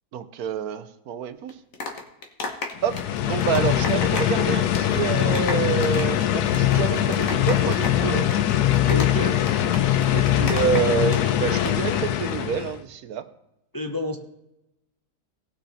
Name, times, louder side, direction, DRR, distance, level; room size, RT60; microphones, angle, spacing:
voice 1, 0.1-1.6 2.8-8.3 10.1-13.2, right 7 dB, 75° right, 11 dB, 1.2 m, -27 dB
sound 1, 1.5-4.4 4.7-4.9 5.2-11.2 11.5-11.7, left 3 dB, 60° left, 1.8 m, -33 dB
sound 2, 2.8-12.8, left 12 dB, 85° left, 1.3 m, -22 dB
voice 2, 8.9-9.4 13.7-14.2, left 1 dB, 20° left, 4 dB, 0.6 m, -28 dB
18.0 x 6.3 x 4.2 m, 0.87 s
omnidirectional pair, 1.6 m